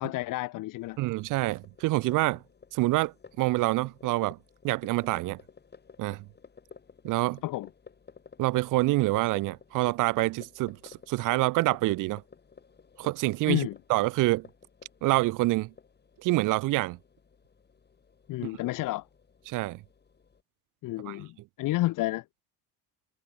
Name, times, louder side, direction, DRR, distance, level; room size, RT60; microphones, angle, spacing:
voice 1, 0.0-1.0 7.4-7.7 13.5-13.8 18.3-19.1 20.8-22.2, left 18 dB, 55° left, 1.1 m, -30 dB
sound 1, 0.8-20.4, left 5 dB, 25° left, 7.2 m, -54 dB
voice 2, 1.0-2.4 2.7-4.4 4.6-5.4 6.0-6.2 7.0-7.4 8.4-12.2 13.0-14.5 15.0-15.7 16.2-17.0 18.4-18.5 19.5-19.8 21.1-21.2, right 20 dB, 55° right, 0.6 m, -26 dB
supercardioid pair, 105°, 38 cm